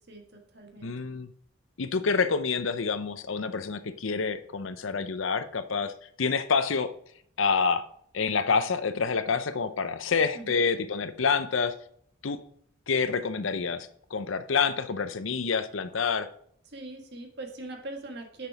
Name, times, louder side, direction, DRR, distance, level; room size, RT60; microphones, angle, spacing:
voice 1, 0.1-0.9 10.3-10.6 16.6-18.5, right 2 dB, 55° right, 3 dB, 1.5 m, -41 dB
voice 2, 0.8-1.3 1.8-5.9 6.2-6.9 7.4-7.8 8.1-11.7 12.2-12.4 12.9-16.3, left 5 dB, 70° left, 11 dB, 0.6 m, -27 dB
6.9 x 6.1 x 4.7 m, 0.64 s
head